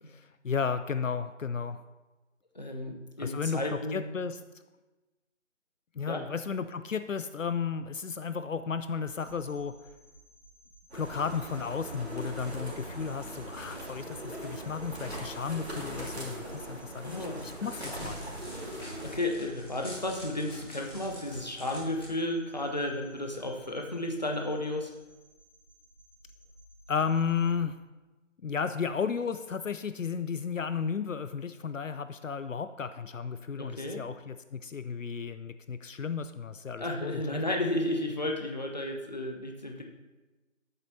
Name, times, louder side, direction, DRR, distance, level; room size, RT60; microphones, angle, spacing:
voice 1, 0.0-1.8 3.2-4.4 6.0-9.7 10.9-17.3 17.6-18.2 26.9-27.8 28.4-37.4, left 6 dB, 75° left, 11 dB, 0.5 m, -33 dB
voice 2, 2.5-4.1 6.1-6.2 17.0-17.4 18.0-18.1 19.0-24.9 33.6-34.0 36.8-39.8, left 1 dB, 35° left, 2 dB, 0.7 m, -33 dB
sound 1, 9.0-27.5, equal, ahead, 1.7 m, -58 dB
sound 2, 10.9-19.2, right 1 dB, 55° right, 2.2 m, -40 dB
Crackle, 17.4-22.0, equal, 20° left, 1.8 m, -47 dB
10.5 x 8.0 x 2.8 m, 1.2 s
figure-of-eight pair, 160°, 39 cm